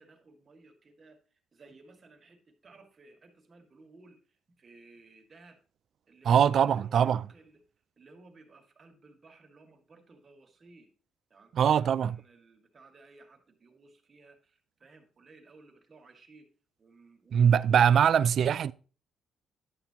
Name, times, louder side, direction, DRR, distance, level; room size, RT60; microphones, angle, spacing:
voice 1, 0.0-5.6 6.1-7.6 8.0-10.9 11.3-16.5 16.8-18.0, right 3 dB, 40° right, 1.9 m, -57 dB
voice 2, 6.3-7.2 11.5-12.2 17.3-18.7, right 8 dB, 60° right, 0.3 m, -22 dB
11.0 x 8.0 x 2.9 m
cardioid pair, 90°, 0 cm